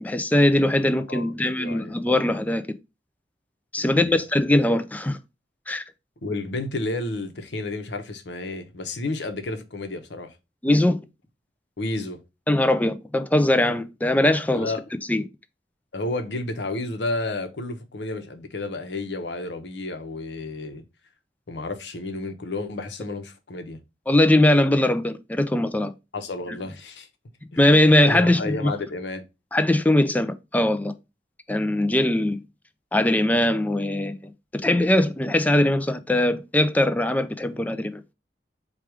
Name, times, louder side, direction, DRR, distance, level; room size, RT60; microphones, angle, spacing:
voice 1, 0.0-2.6 3.7-5.2 5.7-5.8 10.6-11.0 12.5-14.7 15.1-15.2 24.1-25.9 27.6-28.7 29.5-30.9 31.5-32.4 32.9-38.0, left 1 dB, 10° left, 0.4 m, -21 dB
voice 2, 1.6-1.9 3.8-4.2 6.2-10.3 11.8-12.2 14.5-14.8 15.9-20.8 21.5-23.8 26.1-27.1 28.1-29.2, left 2 dB, 80° left, 0.8 m, -31 dB
4.6 x 2.4 x 4.7 m
head